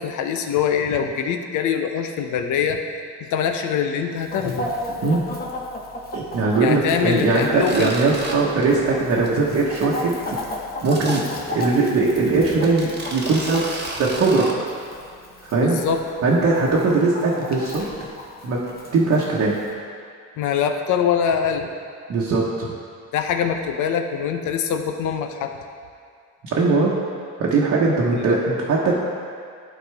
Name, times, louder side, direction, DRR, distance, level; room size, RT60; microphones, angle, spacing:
voice 1, 0.0-2.8 3.2-4.7 6.6-8.0 15.6-16.0 20.4-21.7 23.1-25.5 28.1-28.4, left 7 dB, 80° left, 6 dB, 0.7 m, -23 dB
Chicken rooster, 4.2-19.7, left 1 dB, 30° left, 1.1 m, -35 dB
voice 2, 6.1-10.4 10.8-11.2 11.5-13.7 14.0-14.5 15.4-15.8 16.2-17.9 18.4-18.6 18.9-19.5 22.1-22.7 26.4-26.9 27.4-28.9, right 3 dB, 60° right, -5 dB, 1.1 m, -20 dB
sound 1, 7.6-8.3 8.6-8.9 9.2-9.3 9.7-9.8 10.8-11.2 11.9-12.0 12.5-14.5, right 2 dB, 35° right, 1.3 m, -32 dB
11.5 x 4.3 x 3.4 m, 2.2 s
cardioid pair, 90°, 30 cm